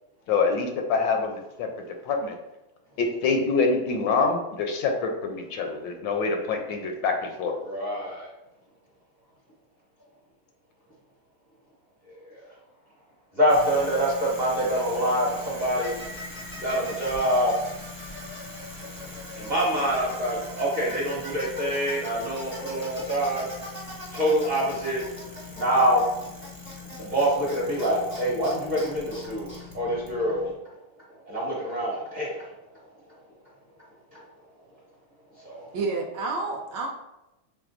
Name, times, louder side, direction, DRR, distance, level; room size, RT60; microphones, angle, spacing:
voice 1, 0.3-1.7 2.0-2.4 3.0-7.6, left 4 dB, 75° left, 3 dB, 1.2 m, -25 dB
voice 2, 7.6-8.3 12.3-12.4 13.4-16.0 16.6-17.5 19.0-23.5 24.1-25.0 25.6-26.0 27.0-30.5 31.3-32.4 35.4-35.7, right 1 dB, 35° right, -5 dB, 0.8 m, -25 dB
Bicycle, 13.5-30.5, left 2 dB, 10° left, 0.6 m, -40 dB
voice 3, 35.7-36.9, right 3 dB, 70° right, 1 dB, 1.2 m, -29 dB
6.0 x 3.6 x 2.5 m, 0.93 s
omnidirectional pair, 2.2 m